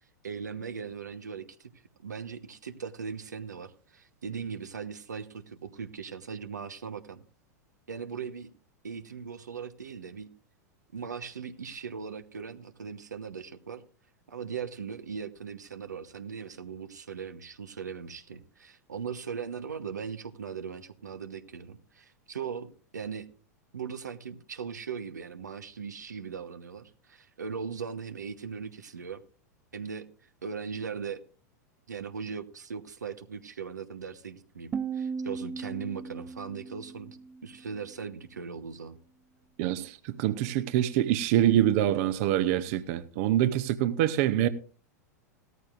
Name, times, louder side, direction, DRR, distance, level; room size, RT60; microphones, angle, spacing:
voice 1, 0.2-1.7 2.0-7.2 7.9-8.5 8.8-10.3 10.9-13.8 14.3-23.3 23.7-29.2 29.7-30.1 30.4-31.2 31.9-37.2 37.4-39.0, right 6 dB, 90° right, 1.0 m, -39 dB
sound 1, 34.7-37.7, right 5 dB, 25° right, 0.5 m, -37 dB
voice 2, 39.6-44.5, right 12 dB, 55° right, 0.8 m, -25 dB
17.0 x 14.0 x 2.5 m
hypercardioid pair, 100°, 9 cm